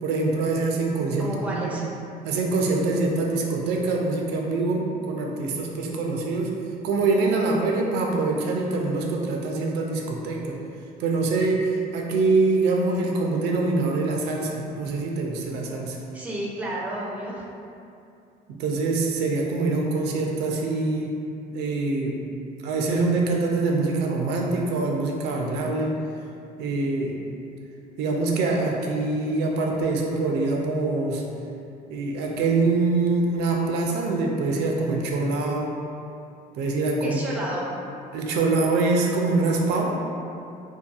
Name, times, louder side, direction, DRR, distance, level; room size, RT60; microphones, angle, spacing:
voice 1, 0.0-1.8 2.2-6.5 6.8-10.6 11.0-16.0 18.5-21.1 21.5-22.2 22.6-25.9 26.6-27.2 28.0-31.2 31.9-35.7 36.5-37.2 38.1-40.0, right 3 dB, 80° right, 0 dB, 0.4 m, -24 dB
voice 2, 1.2-1.8 16.1-17.4 37.0-37.7, right 1 dB, 10° right, -4 dB, 0.4 m, -31 dB
2.7 x 2.3 x 2.4 m, 2.6 s
cardioid pair, 110°, 17 cm